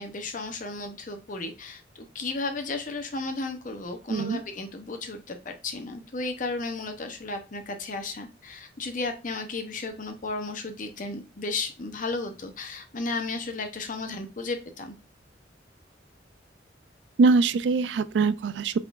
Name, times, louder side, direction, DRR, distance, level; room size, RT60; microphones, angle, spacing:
voice 1, 0.0-1.8 2.1-14.9, left 3 dB, 45° left, 0.7 m, -34 dB
voice 2, 4.1-4.4 17.2-18.8, right 4 dB, 70° right, 0.3 m, -22 dB
5.6 x 3.7 x 2.4 m
head